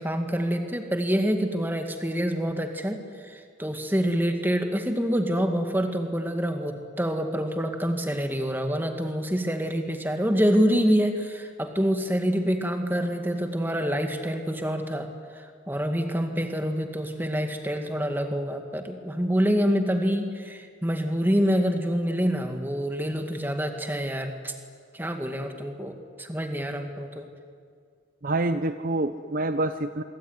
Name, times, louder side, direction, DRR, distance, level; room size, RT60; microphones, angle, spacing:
voice 1, 0.0-24.5 24.9-27.3, equal, 10° right, 5 dB, 2.1 m, -26 dB
voice 2, 28.2-30.0, right 2 dB, 45° right, 10 dB, 0.7 m, -27 dB
25.5 x 23.0 x 9.7 m, 2.1 s
head